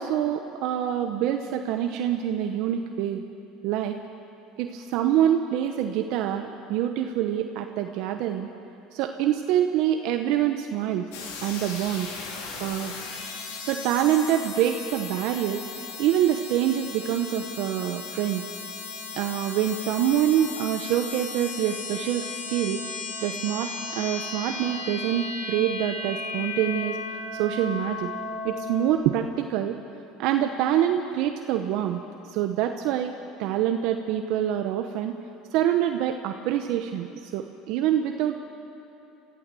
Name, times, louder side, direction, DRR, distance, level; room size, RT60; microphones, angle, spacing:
voice 1, 0.0-3.2 3.6-4.0 4.6-8.5 8.9-11.1 11.4-12.1 12.6-12.9 13.6-15.6 16.0-18.5 19.2-22.8 23.2-27.0 27.3-28.1 28.4-29.8 30.2-32.0 32.3-33.1 33.4-35.1 35.5-38.4, right 11 dB, 70° right, 6 dB, 1.0 m, -26 dB
sound 1, 11.1-29.0, left 4 dB, 80° left, 3.5 m, -36 dB
23.5 x 14.5 x 7.7 m, 2.7 s
supercardioid pair, 100°, 0 cm